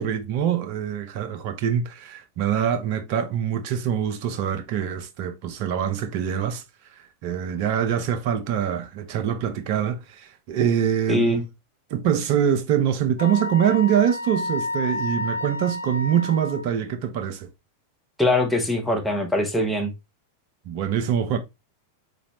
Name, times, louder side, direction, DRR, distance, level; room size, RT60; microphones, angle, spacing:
voice 1, 0.0-6.6 7.2-11.5 11.9-17.5 20.7-21.4, right 9 dB, 45° right, 0.6 m, -24 dB
voice 2, 11.1-11.4 18.2-19.9, left 2 dB, ahead, 0.9 m, -22 dB
Wind instrument woodwind instrument, 13.2-16.7, left 2 dB, 80° left, 0.3 m, -30 dB
4.0 x 3.0 x 2.7 m
figure-of-eight pair, 90°, 0 cm